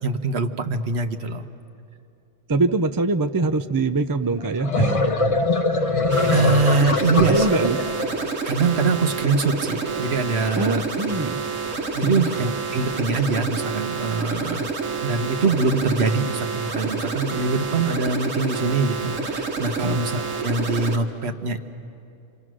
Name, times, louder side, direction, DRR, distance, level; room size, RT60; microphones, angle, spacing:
voice 1, 0.0-1.4 6.3-7.5 8.5-10.8 11.9-14.7 15.0-21.6, right 3 dB, 60° right, 7 dB, 1.2 m, -23 dB
voice 2, 2.5-5.2 7.3-7.8 10.6-11.4 12.0-12.2 19.8-20.0, right 3 dB, 30° right, 8 dB, 0.4 m, -23 dB
sound 1, 4.4-8.3, left 2 dB, 35° left, 0.7 m, -22 dB
sound 2, 6.1-21.0, right 4 dB, 90° right, 1.8 m, -28 dB
28.0 x 26.5 x 6.2 m, 2.6 s
omnidirectional pair, 1.3 m